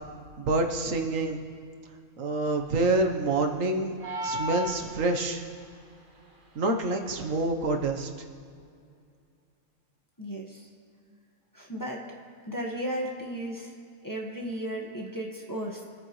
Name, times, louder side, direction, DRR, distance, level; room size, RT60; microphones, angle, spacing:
voice 1, 0.4-1.4 2.2-3.9 4.2-5.4 6.5-8.1, right 2 dB, 75° right, 4 dB, 1.4 m, -27 dB
sound 1, 4.0-5.5, left 1 dB, 40° right, 1.4 m, -34 dB
voice 2, 10.2-10.7 11.5-12.1 12.5-13.7 14.0-15.8, right 1 dB, 15° left, -2 dB, 1.5 m, -35 dB
24.5 x 9.3 x 3.1 m, 2.3 s
omnidirectional pair, 1.4 m